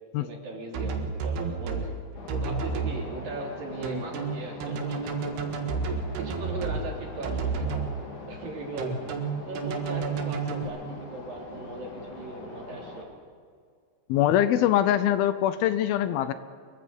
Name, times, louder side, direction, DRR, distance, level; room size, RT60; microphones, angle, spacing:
voice 1, 0.2-1.9 2.3-5.3 5.8-7.8 8.3-9.0 9.5-13.0, right 2 dB, 65° right, -1 dB, 4.8 m, -38 dB
sound 1, 0.7-1.9 2.3-2.9 3.8-6.8 7.2-7.9 8.8-10.6, right 5 dB, 85° right, 3.9 m, -30 dB
sound 2, 2.1-13.0, left 2 dB, 55° left, 4.0 m, -43 dB
voice 2, 14.1-16.3, left 11 dB, 80° left, 12 dB, 2.5 m, -23 dB
24.5 x 23.0 x 5.3 m, 2.1 s
omnidirectional pair, 4.5 m